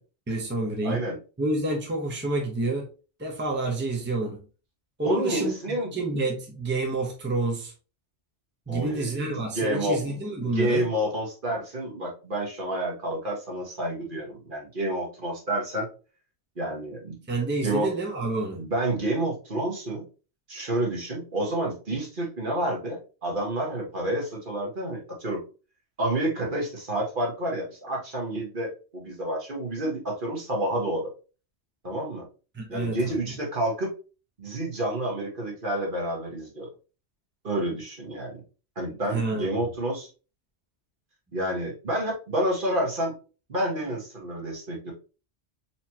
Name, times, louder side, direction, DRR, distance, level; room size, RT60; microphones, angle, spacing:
voice 1, 0.3-1.0 1.4-2.9 3.2-4.4 5.0-7.7 8.7-10.8 17.3-18.6 32.5-33.4 39.1-39.5, right 2 dB, 10° right, 0.8 m, -28 dB
voice 2, 0.8-1.2 5.0-5.9 8.7-10.0 10.4-15.9 16.6-17.2 17.6-17.9 18.6-20.0 20.5-25.4 26.0-31.1 31.8-32.2 32.7-33.9 34.4-36.7 37.4-38.4 38.7-40.1 41.3-43.1 43.5-44.9, right 1 dB, 50° right, 1.5 m, -29 dB
4.2 x 3.1 x 2.8 m
omnidirectional pair, 1.2 m